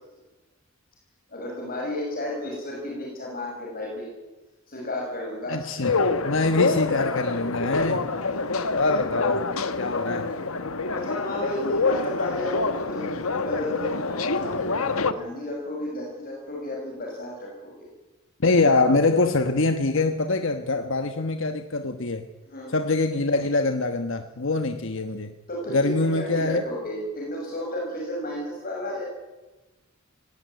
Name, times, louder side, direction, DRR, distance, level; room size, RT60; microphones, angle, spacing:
voice 1, 1.3-4.1 4.7-5.5 10.9-17.9 22.5-22.8 25.5-29.0, left 1 dB, 45° left, -2 dB, 6.4 m, -33 dB
voice 2, 5.5-5.9 6.2-8.1 8.7-9.5 9.8-10.3 18.4-22.3 22.7-25.3 25.7-26.6, left 3 dB, 65° left, 7 dB, 1.3 m, -24 dB
sound 1, 5.8-15.1, left 3 dB, 85° left, 1.3 m, -26 dB
19.5 x 17.5 x 9.6 m, 1.1 s
head